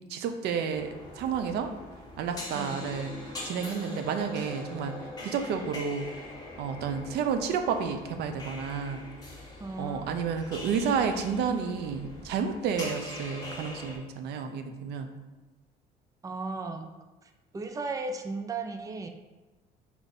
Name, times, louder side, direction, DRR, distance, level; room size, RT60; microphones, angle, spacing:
voice 1, 0.1-1.7 2.2-3.1 3.4-5.0 5.2-6.1 6.6-9.0 9.8-15.1, right 6 dB, 75° right, 7 dB, 0.7 m, -31 dB
sound 1, 0.7-14.0, left 1 dB, 20° left, 1.9 m, -43 dB
voice 2, 2.5-2.9 9.6-10.2 16.2-16.9 17.2-19.1, right 3 dB, 20° right, 6 dB, 0.5 m, -36 dB
4.5 x 4.3 x 5.4 m, 1.1 s
cardioid pair, 110°, 17 cm